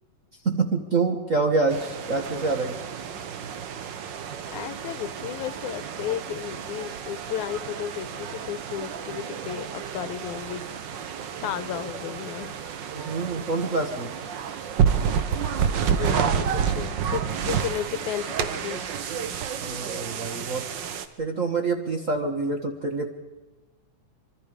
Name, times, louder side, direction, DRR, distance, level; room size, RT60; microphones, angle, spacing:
voice 1, 0.4-2.8 12.9-14.1 19.6-20.6 21.2-23.1, right 3 dB, 40° right, 4 dB, 1.2 m, -26 dB
sound 1, 1.7-21.1, right 7 dB, 70° right, 1.1 m, -30 dB
voice 2, 4.5-10.7 11.0-11.1 11.4-12.6 15.3-15.5 15.9-18.8, left 10 dB, 75° left, 12 dB, 2.4 m, -33 dB
26.0 x 25.0 x 5.1 m, 1.2 s
omnidirectional pair, 3.5 m